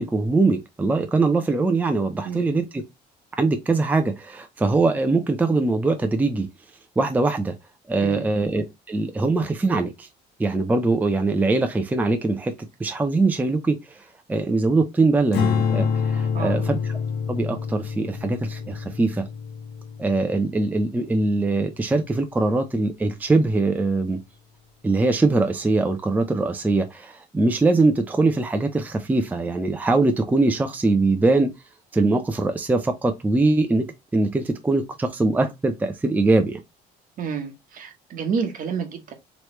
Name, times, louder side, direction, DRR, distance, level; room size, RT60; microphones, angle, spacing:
voice 1, 0.0-2.8 3.4-6.5 7.0-7.5 7.9-10.1 10.4-12.5 12.8-16.8 17.3-19.3 20.0-24.2 24.8-31.5 31.9-36.6, right 3 dB, 10° right, 0.5 m, -22 dB
voice 2, 2.2-2.6 8.0-8.3 16.3-16.7 37.2-39.1, right 6 dB, 55° right, 1.0 m, -29 dB
Strum, 15.3-21.7, left 6 dB, 75° left, 1.2 m, -27 dB
3.1 x 3.1 x 3.0 m
cardioid pair, 110°, 17 cm